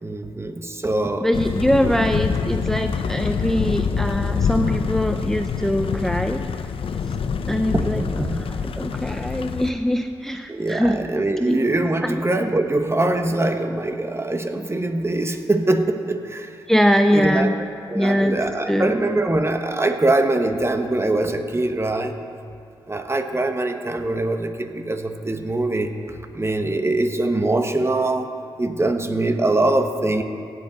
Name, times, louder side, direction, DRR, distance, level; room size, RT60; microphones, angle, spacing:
voice 1, 0.0-1.3 1.8-2.0 7.7-8.6 10.5-16.5 17.1-17.5 17.9-22.1 22.9-28.3 28.6-30.2, right 2 dB, 25° right, 6 dB, 1.0 m, -23 dB
voice 2, 1.2-6.4 7.5-11.1 11.4-11.7 12.0-12.2 16.7-17.5 17.9-18.4 18.7-18.9, equal, 5° left, 6 dB, 0.5 m, -22 dB
sound 1, 1.3-9.7, left 6 dB, 65° left, 0.5 m, -25 dB
16.5 x 7.7 x 4.0 m, 2.4 s
cardioid pair, 50°, 10 cm